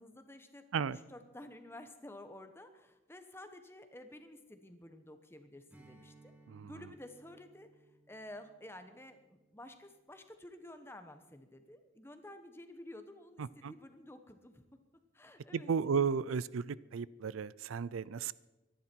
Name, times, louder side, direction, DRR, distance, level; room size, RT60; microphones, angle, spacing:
voice 1, 0.0-0.6 1.1-6.3 6.6-7.7 8.1-14.6 15.1-15.7, left 1 dB, 10° left, 8 dB, 1.1 m, -52 dB
Strum, 5.7-10.5, right 2 dB, 10° right, 2.4 m, -64 dB
voice 2, 6.5-6.8 13.4-13.7 15.5-18.3, right 6 dB, 90° right, 20 dB, 0.4 m, -34 dB
23.5 x 11.0 x 4.5 m, 1.1 s
head